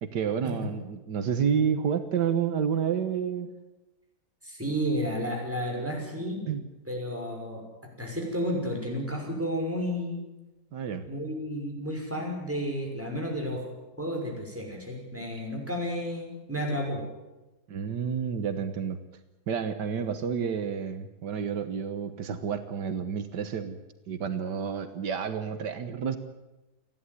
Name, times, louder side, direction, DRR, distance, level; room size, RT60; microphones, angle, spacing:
voice 1, 0.0-3.5 6.5-6.6 10.7-11.0 17.7-19.0 19.5-23.8 24.1-26.2, right 7 dB, 80° right, 9 dB, 1.8 m, -30 dB
voice 2, 4.4-6.5 6.9-7.6 8.0-10.2 11.0-13.7 14.0-17.0, equal, 5° right, 0 dB, 6.1 m, -32 dB
29.5 x 11.5 x 9.6 m, 1.1 s
omnidirectional pair, 1.8 m